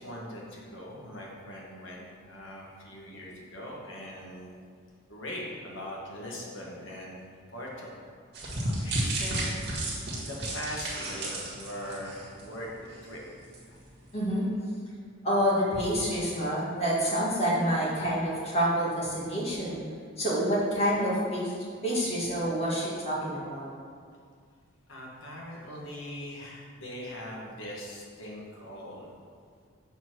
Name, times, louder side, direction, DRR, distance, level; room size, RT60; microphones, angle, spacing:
voice 1, 0.0-4.6 5.1-8.0 8.6-9.5 10.2-13.2 13.7-13.8 24.9-29.1, equal, 65° left, -3 dB, 1.6 m, -41 dB
sound 1, 8.3-12.6 12.9-13.1 13.5-13.6, right 1 dB, 50° right, 1.8 m, -32 dB
voice 2, 14.1-14.5 15.2-19.8 20.2-21.5 21.8-23.7, equal, 30° left, -7 dB, 1.9 m, -27 dB
7.0 x 4.4 x 6.1 m, 2.1 s
head